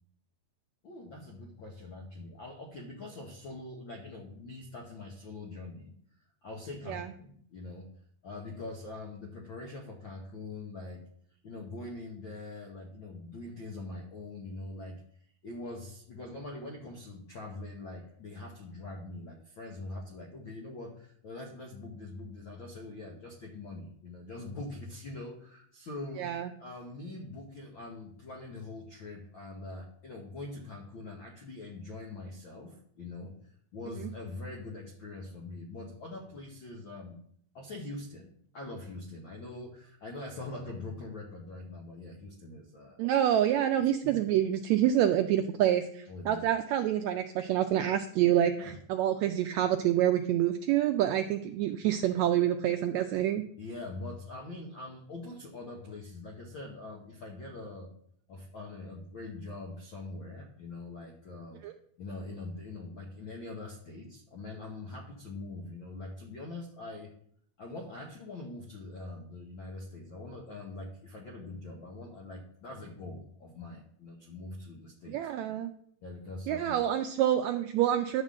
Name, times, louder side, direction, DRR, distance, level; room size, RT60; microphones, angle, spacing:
voice 1, 0.8-5.9 6.4-7.9 8.2-11.0 11.4-15.0 15.4-26.3 26.6-37.2 37.5-43.0 44.0-44.3 46.1-46.4 48.6-48.8 53.6-57.9 58.3-61.6 62.0-67.1 67.6-75.5 76.0-76.8, left 2 dB, 70° left, 0 dB, 1.1 m, -43 dB
voice 2, 26.2-26.5 43.0-53.4 61.6-61.7 75.1-75.7 76.5-78.2, right 11 dB, 85° right, 7 dB, 1.6 m, -27 dB
10.5 x 3.7 x 7.4 m, 0.66 s
omnidirectional pair, 3.6 m